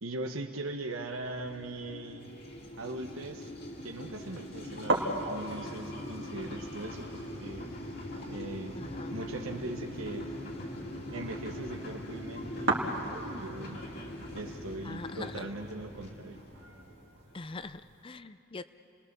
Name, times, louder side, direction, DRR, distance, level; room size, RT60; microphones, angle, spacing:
voice 1, 0.0-2.4 2.8-3.5 3.8-7.7 8.3-8.8 9.1-10.3 11.1-13.0 13.4-13.8 14.3-16.4, right 2 dB, 90° right, 3 dB, 1.2 m, -40 dB
sound 1, 0.8-17.5, left 1 dB, 50° left, 2.8 m, -42 dB
sound 2, 2.2-18.0, right 2 dB, 60° right, 2.1 m, -39 dB
voice 2, 8.8-9.2 14.8-15.5 17.3-18.7, left 3 dB, 25° left, 12 dB, 0.4 m, -43 dB
30.0 x 20.5 x 6.8 m, 2.7 s
head